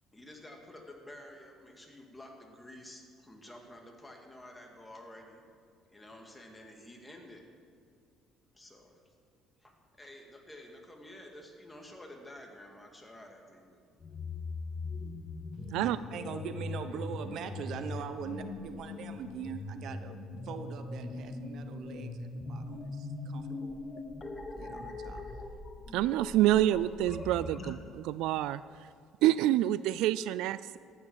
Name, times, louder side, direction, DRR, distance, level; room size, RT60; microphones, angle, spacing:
voice 1, 0.1-5.4 5.9-7.4 8.5-8.9 9.6-13.8, left 1 dB, 10° left, 1 dB, 2.4 m, -50 dB
sound 1, 14.0-27.7, left 3 dB, 30° left, 1.6 m, -41 dB
voice 2, 15.8-20.2 20.4-23.8 24.3-25.6, right 7 dB, 65° right, 9 dB, 1.0 m, -42 dB
voice 3, 25.9-28.6 29.2-30.8, right 14 dB, 80° right, 16 dB, 0.3 m, -27 dB
14.5 x 9.7 x 6.3 m, 2.3 s
cardioid pair, 95°, 0 cm